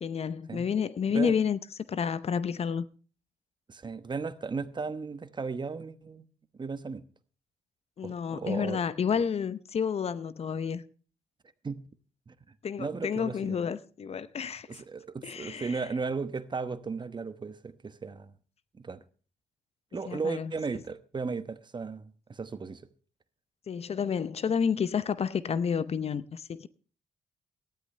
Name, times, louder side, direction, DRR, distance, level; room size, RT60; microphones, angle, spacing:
voice 1, 0.0-1.6 1.9-2.9 8.0-10.8 12.6-14.8 15.2-15.8 20.1-20.5 23.7-26.7, left 7 dB, 45° left, 0.7 m, -30 dB
voice 2, 3.7-6.3 6.6-7.0 8.0-8.8 11.6-11.8 12.3-12.4 12.8-13.6 14.7-18.3 18.7-19.0 19.9-22.8, right 4 dB, 30° right, 1.1 m, -35 dB
18.0 x 13.0 x 3.3 m
supercardioid pair, 60°, 14 cm